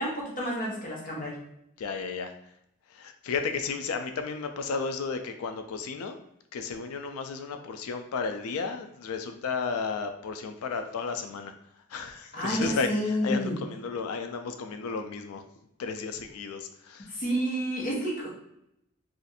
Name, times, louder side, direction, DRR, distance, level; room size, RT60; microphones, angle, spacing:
voice 1, 0.0-1.4 12.3-13.6 17.1-18.3, equal, 40° left, -4 dB, 0.9 m, -30 dB
voice 2, 1.8-2.3 2.9-6.2 6.5-11.5 11.9-15.4 15.8-17.1, left 5 dB, 90° left, 7 dB, 0.4 m, -33 dB
2.5 x 2.5 x 4.1 m, 0.77 s
head